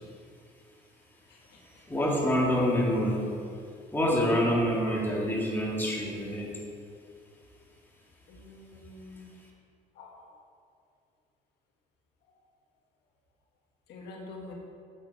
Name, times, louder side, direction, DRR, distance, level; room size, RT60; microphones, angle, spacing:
voice 1, 1.9-3.2 3.9-6.5, equal, 10° left, -3 dB, 2.0 m, -26 dB
voice 2, 8.3-9.3 10.0-10.1 13.9-14.5, left 3 dB, 80° left, 0 dB, 1.6 m, -45 dB
7.8 x 6.8 x 4.6 m, 2.4 s
cardioid pair, 110°, 17 cm